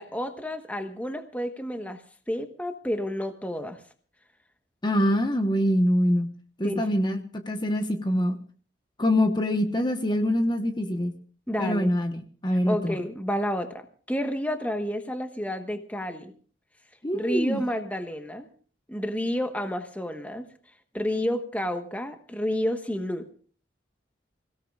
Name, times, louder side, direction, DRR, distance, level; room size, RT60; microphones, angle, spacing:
voice 1, 0.0-2.0 2.3-3.8 6.6-6.9 11.5-11.9 12.7-16.3 17.1-18.5 18.9-20.4 20.9-23.2, equal, 10° left, 6 dB, 1.2 m, -30 dB
voice 2, 4.8-6.3 6.6-8.4 9.0-11.2 11.6-13.0 17.0-17.6, equal, 25° left, 6 dB, 1.1 m, -24 dB
26.5 x 17.0 x 2.4 m, 0.43 s
head